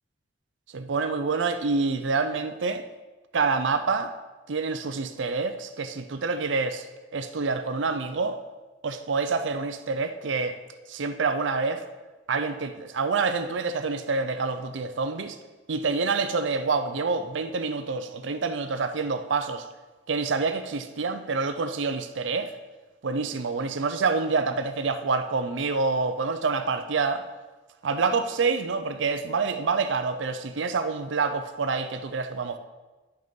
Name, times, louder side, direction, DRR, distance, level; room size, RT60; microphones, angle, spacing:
voice 1, 0.7-2.8 3.3-4.1 4.5-6.9 7.1-8.4 8.8-10.5 10.9-11.8 12.3-15.4 15.7-19.7 20.1-22.5 23.0-27.3 27.8-32.6, right 4 dB, 90° right, 8 dB, 0.6 m, -27 dB
10.5 x 6.6 x 5.2 m, 1.2 s
head